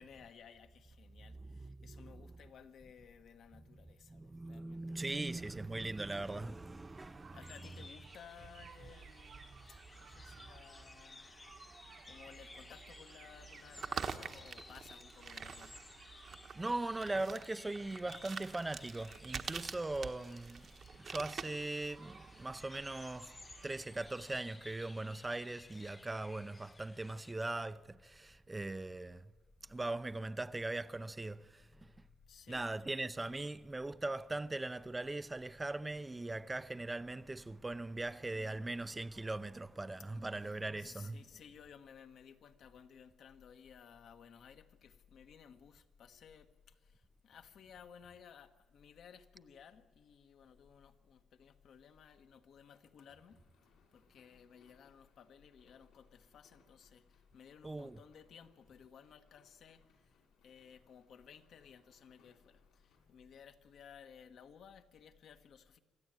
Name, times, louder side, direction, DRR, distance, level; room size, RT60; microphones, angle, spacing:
voice 1, 0.0-5.5 6.9-9.5 9.9-11.3 11.6-15.8 32.3-32.6 33.2-33.4 40.3-53.4 53.9-60.1 60.4-65.8, left 7 dB, 65° left, 1.5 m, -58 dB
voice 2, 1.2-2.4 4.1-7.9 16.5-23.4 23.6-29.3 29.7-31.9 32.5-41.3 57.6-58.0, right 2 dB, 15° right, 0.6 m, -40 dB
sound 1, 5.4-24.4, right 6 dB, 55° right, 1.3 m, -49 dB
sound 2, 7.4-27.3, left 3 dB, 25° left, 0.7 m, -58 dB
sound 3, 53.0-63.1, left 4 dB, 90° left, 5.6 m, -73 dB
26.0 x 13.5 x 9.0 m
cardioid pair, 90°, 0 cm